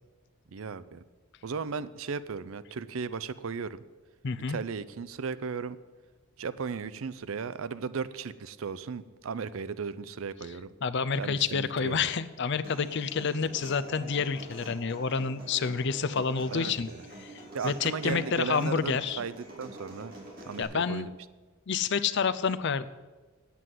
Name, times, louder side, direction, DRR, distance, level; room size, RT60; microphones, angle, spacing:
voice 1, 0.5-1.0 1.4-3.8 4.5-5.8 6.4-10.7 11.2-12.0 16.5-17.0 17.5-20.1 20.5-21.1, right 5 dB, 70° right, 16 dB, 0.5 m, -36 dB
voice 2, 4.2-4.6 10.8-16.9 17.2-17.3 17.6-19.2 20.6-21.1 21.7-22.9, left 5 dB, 55° left, 13 dB, 0.5 m, -29 dB
Human voice / Acoustic guitar, 12.6-20.6, right 1 dB, 40° right, 3.1 m, -46 dB
9.4 x 8.4 x 7.6 m, 1.3 s
head